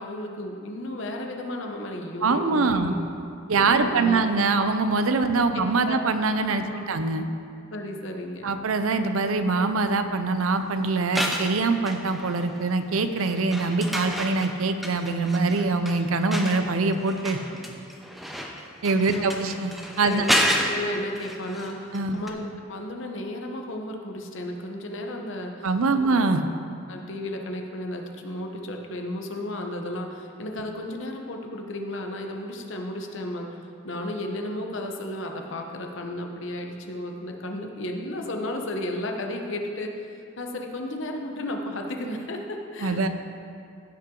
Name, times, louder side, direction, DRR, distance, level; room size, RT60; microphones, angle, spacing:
voice 1, 0.0-3.0 3.8-4.2 5.3-6.0 6.6-6.8 7.7-8.6 19.1-19.4 20.0-20.3 20.6-22.4 22.7-26.0 26.9-33.6 33.8-43.1, left 1 dB, 60° left, 2 dB, 0.9 m, -34 dB
voice 2, 2.2-3.0 3.5-7.3 8.4-17.4 18.8-19.7 20.0-20.3 21.9-22.2 25.6-26.4 42.8-43.1, right 3 dB, 80° right, 9 dB, 0.6 m, -23 dB
sound 1, 11.0-12.6 12.9-22.0 22.3-22.4, equal, ahead, 0.6 m, -30 dB
15.5 x 5.8 x 3.8 m, 2.5 s
head